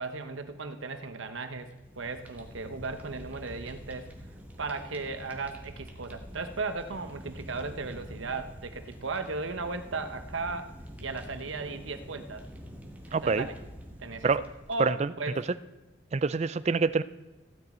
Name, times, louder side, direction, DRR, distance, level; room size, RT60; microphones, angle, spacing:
voice 1, 0.0-4.1 4.6-10.7 11.0-12.5 13.1-13.6 14.0-15.5, right 3 dB, 80° right, 9 dB, 1.0 m, -36 dB
Fire, 1.6-15.1, equal, 10° right, 1.4 m, -46 dB
voice 2, 13.1-13.4 14.2-14.4 14.8-15.1 16.1-17.0, right 4 dB, 35° right, 15 dB, 0.4 m, -25 dB
15.0 x 9.5 x 4.3 m, 1.1 s
head